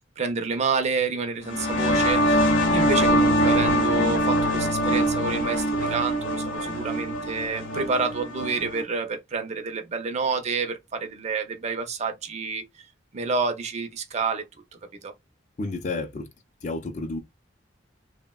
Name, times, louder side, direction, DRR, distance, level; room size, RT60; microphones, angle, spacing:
voice 1, 0.2-12.6 13.1-14.4 15.0-15.1, right 4 dB, 35° right, 0.5 m, -29 dB
sound 1, 1.4-8.8, equal, 85° left, 0.7 m, -23 dB
voice 2, 15.6-16.3 16.6-17.2, left 3 dB, 40° left, 0.5 m, -31 dB
3.3 x 2.1 x 2.2 m
head